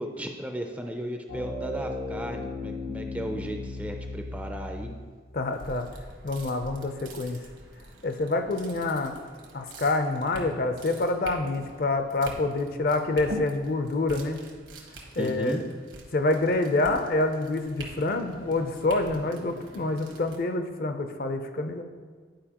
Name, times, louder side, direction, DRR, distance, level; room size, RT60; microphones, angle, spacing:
voice 1, 0.0-4.9 15.2-15.6, equal, 10° right, 4 dB, 0.3 m, -35 dB
sound 1, 1.3-5.2, left 2 dB, 90° left, 0.8 m, -36 dB
voice 2, 5.3-5.9 6.2-7.4 8.0-9.2 9.5-14.4 15.2-15.6 16.1-21.8, left 2 dB, 50° left, 7 dB, 0.5 m, -27 dB
sound 2, 5.5-20.4, right 1 dB, 80° right, 1.2 m, -45 dB
10.0 x 4.6 x 2.9 m, 1.5 s
head